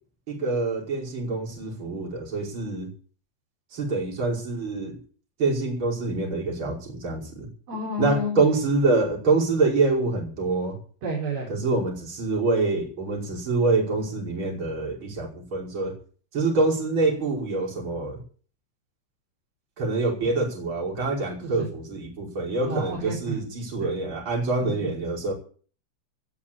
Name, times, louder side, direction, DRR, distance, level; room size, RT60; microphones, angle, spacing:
voice 1, 0.3-2.9 3.7-5.0 5.4-7.5 8.0-10.8 11.5-16.0 16.3-18.2 19.8-25.3, right 3 dB, 25° right, -1 dB, 5.6 m, -25 dB
voice 2, 7.7-8.5 11.0-11.5 21.4-21.7 22.6-23.4 23.8-23.9 24.6-24.7, equal, 50° right, -2 dB, 5.3 m, -30 dB
18.0 x 7.1 x 8.7 m, 0.42 s
omnidirectional pair, 5.7 m